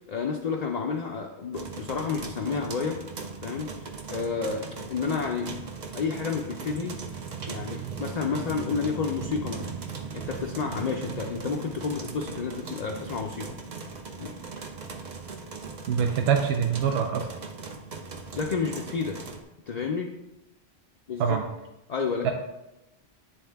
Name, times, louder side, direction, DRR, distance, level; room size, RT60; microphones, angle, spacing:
voice 1, 0.1-3.0 3.4-5.5 5.9-7.0 7.5-9.7 10.1-13.5 14.2-14.3 18.4-19.2 19.7-20.1 21.1-21.4 21.9-22.3, left 5 dB, 50° left, 2 dB, 0.5 m, -30 dB
sound 1, 1.5-19.4, right 5 dB, 50° right, 0.7 m, -38 dB
voice 2, 15.9-17.3 21.2-21.4 22.2-22.3, right 7 dB, 80° right, 4 dB, 0.8 m, -24 dB
9.9 x 3.6 x 3.4 m, 0.96 s
omnidirectional pair, 1.1 m